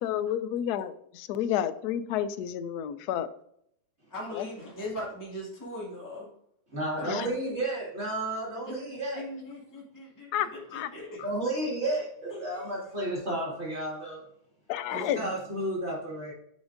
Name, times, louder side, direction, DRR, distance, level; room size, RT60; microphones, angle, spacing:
voice 1, 0.0-3.3 4.3-4.5 7.0-7.3 10.3-10.9 14.7-15.2, left 10 dB, 70° left, 1.0 m, -30 dB
voice 2, 4.1-6.2 7.0-7.1 8.7-8.8 9.2-11.2 12.4-12.7 14.9-15.2, left 1 dB, 10° left, 2.0 m, -39 dB
voice 3, 6.7-9.2 11.2-14.2 14.9-16.3, right 1 dB, 35° right, 2.3 m, -32 dB
9.8 x 5.2 x 2.5 m
omnidirectional pair, 2.0 m